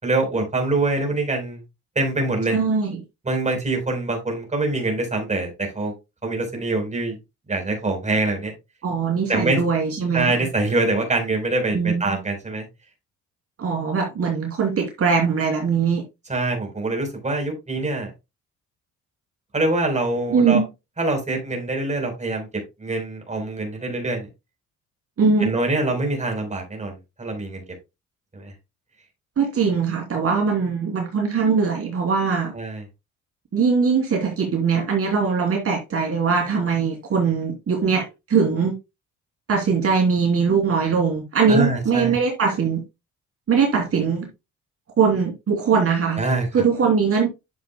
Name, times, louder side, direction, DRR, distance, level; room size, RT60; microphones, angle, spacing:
voice 1, 0.0-1.6 2.0-2.6 3.2-5.9 6.2-7.2 7.5-8.5 9.3-9.6 10.1-12.7 16.3-18.1 19.5-20.6 21.0-22.5 22.8-24.3 25.4-27.6 28.3-28.5 32.5-32.8 41.5-42.2 46.2-46.5, right 2 dB, 25° right, 4.1 m, -24 dB
voice 2, 2.5-3.0 8.8-10.3 11.7-12.2 13.6-16.0 20.3-20.7 25.2-25.5 29.4-32.5 33.5-38.7 39.5-42.8 43.5-44.3 45.0-46.2 46.5-47.3, right 5 dB, 50° right, 2.8 m, -21 dB
10.5 x 7.0 x 2.2 m
cardioid pair, 90°, 30 cm